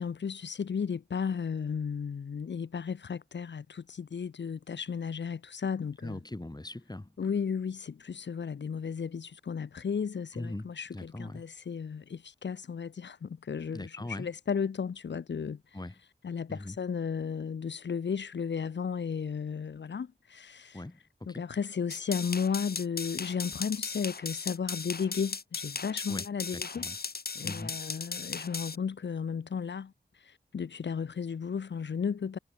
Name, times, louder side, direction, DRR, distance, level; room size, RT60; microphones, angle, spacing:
voice 1, 0.0-6.2 7.2-15.8 16.2-20.8 21.3-26.9 27.3-32.4, left 6 dB, 85° left, 1.1 m, -34 dB
voice 2, 6.0-7.1 10.3-10.7 10.9-11.4 13.7-14.3 15.7-15.9 16.5-16.8 20.7-21.4 26.1-26.3 26.5-27.0 27.4-27.8, left 1 dB, 20° left, 7.6 m, -40 dB
sound 1, 21.9-28.8, left 4 dB, 60° left, 2.2 m, -37 dB
wide cardioid pair, 80°, 18 cm